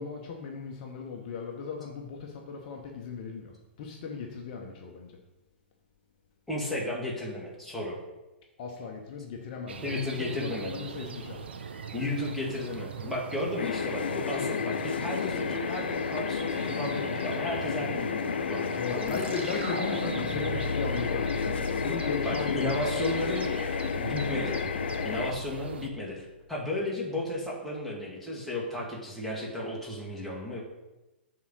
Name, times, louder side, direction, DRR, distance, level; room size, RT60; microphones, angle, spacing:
voice 1, 0.0-3.5 3.8-5.1 8.6-11.4 17.6-17.8 18.8-22.9, left 5 dB, 40° left, 1 dB, 0.9 m, -37 dB
voice 2, 6.5-8.0 9.8-10.7 11.9-19.2 22.2-23.5 24.0-24.6 25.0-30.6, left 1 dB, ahead, -5 dB, 1.7 m, -34 dB
sound 1, 9.7-25.9, right 5 dB, 60° right, 0.7 m, -41 dB
sound 2, 13.6-25.3, left 7 dB, 60° left, 0.4 m, -32 dB
sound 3, 19.1-26.3, left 1 dB, 80° right, 1.8 m, -37 dB
7.1 x 3.8 x 6.2 m, 1.0 s
figure-of-eight pair, 110°, 6 cm